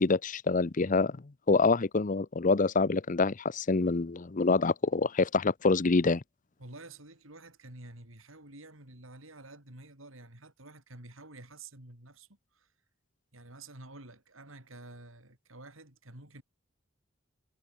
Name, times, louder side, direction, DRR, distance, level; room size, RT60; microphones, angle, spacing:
voice 1, 0.0-6.2, left 3 dB, 40° left, 0.6 m, -26 dB
voice 2, 6.6-12.7 13.3-16.4, right 2 dB, 80° right, 6.3 m, -50 dB
head